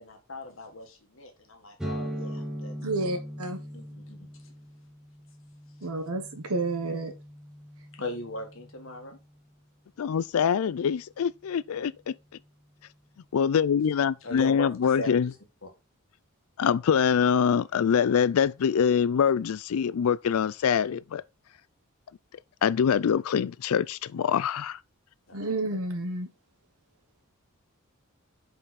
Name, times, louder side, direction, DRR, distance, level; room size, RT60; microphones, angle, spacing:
voice 1, 0.0-2.7 3.7-4.5 7.9-9.2 14.2-15.3 15.6-15.7 25.3-25.5, left 2 dB, 65° left, 1.8 m, -39 dB
sound 1, 1.8-9.4, equal, 5° right, 1.1 m, -40 dB
voice 2, 2.8-3.6 5.8-7.1 25.3-26.3, right 2 dB, 80° right, 1.2 m, -30 dB
voice 3, 10.0-12.1 13.3-15.3 16.6-21.2 22.6-24.8, left 7 dB, 80° left, 0.4 m, -24 dB
5.4 x 5.4 x 4.1 m
head